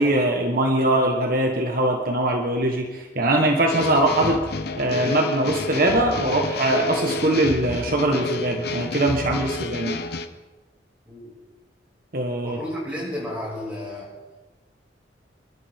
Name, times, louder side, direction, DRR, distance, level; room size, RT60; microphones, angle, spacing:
voice 1, 0.0-4.4 4.8-10.0 12.1-12.6, right 1 dB, 55° right, 2 dB, 1.4 m, -22 dB
sound 1, 3.7-10.3, left 2 dB, 60° left, 0.9 m, -30 dB
voice 2, 12.4-14.1, left 1 dB, 10° right, -5 dB, 6.7 m, -32 dB
27.5 x 12.0 x 3.7 m, 1.2 s
head